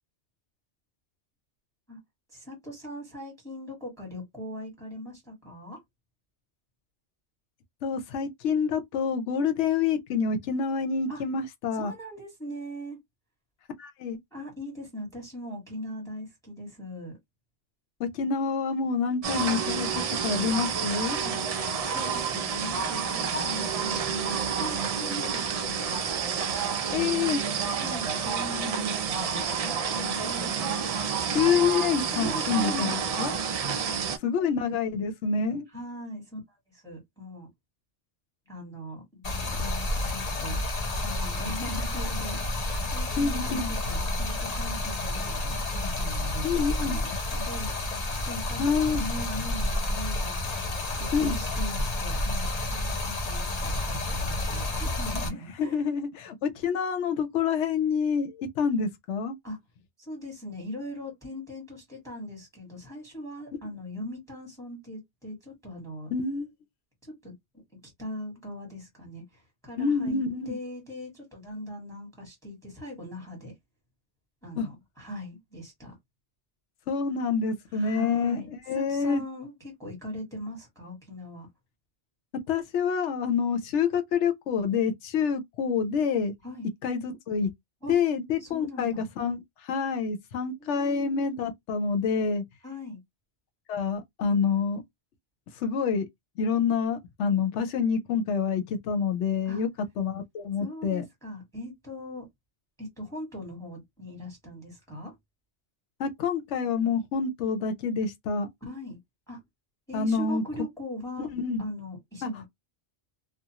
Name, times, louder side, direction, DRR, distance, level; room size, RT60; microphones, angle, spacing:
voice 1, 2.3-5.8 11.1-11.2 11.7-13.0 14.3-17.2 21.2-21.4 21.8-26.0 26.5-27.1 27.7-29.3 29.6-30.9 31.4-31.5 32.1-32.9 33.6-34.0 35.7-36.4 36.7-37.5 38.5-40.6 41.0-50.6 51.0-55.8 59.4-59.6 60.0-66.1 67.0-67.3 67.7-73.5 74.4-75.9 77.7-81.5 86.4-86.7 87.8-88.0 88.4-89.0 90.6-91.3 92.6-93.0 99.4-99.6 100.6-102.3 102.8-105.1 108.6-109.0 109.3-109.4 109.9-111.3 111.6-112.5, left 1 dB, 5° left, 1.3 m, -40 dB
voice 2, 7.8-11.9 13.8-14.2 18.0-21.2 26.9-27.4 31.3-33.3 34.2-35.7 43.2-43.7 46.4-47.0 48.6-49.0 51.1-51.4 55.6-59.3 66.1-66.5 69.8-70.6 74.6-74.7 76.9-79.2 82.5-86.3 86.8-87.5 87.9-92.4 93.7-94.8 95.6-96.1 96.4-99.7 100.0-101.0 106.0-108.5 109.9-110.4 111.3-111.6 112.2-112.3, left 6 dB, 90° left, 0.9 m, -27 dB
sound 1, 19.2-34.2, right 6 dB, 65° right, 0.3 m, -29 dB
Stream, 39.2-55.3, left 1 dB, 40° left, 0.7 m, -30 dB
2.5 x 2.2 x 2.8 m
omnidirectional pair, 1.2 m